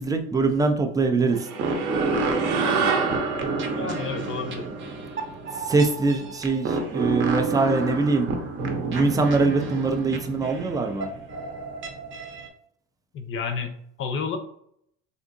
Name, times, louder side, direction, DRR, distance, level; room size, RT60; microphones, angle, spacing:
voice 1, 0.0-1.5 5.6-8.3 8.9-11.1, right 3 dB, 15° right, 5 dB, 0.3 m, -23 dB
sound 1, 1.3-6.0, right 4 dB, 85° right, 0.8 m, -28 dB
sound 2, 1.6-12.5, right 3 dB, 40° right, 0.7 m, -30 dB
voice 2, 3.7-4.7 13.1-14.4, left 5 dB, 45° left, 7 dB, 0.6 m, -31 dB
3.5 x 2.7 x 2.5 m, 0.69 s
supercardioid pair, 110°, 30 cm